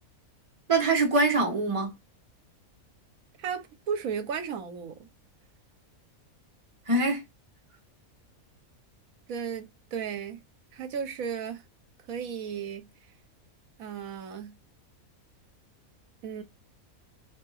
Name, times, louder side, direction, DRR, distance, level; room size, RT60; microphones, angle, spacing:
voice 1, 0.7-1.9 6.9-7.2, right 3 dB, 25° right, 1.1 m, -23 dB
voice 2, 3.4-5.1 9.3-10.4 10.7-11.6 12.1-12.9 13.8-14.6 16.2-16.4, right 7 dB, 75° right, 1.2 m, -34 dB
2.9 x 2.8 x 3.9 m
omnidirectional pair, 1.5 m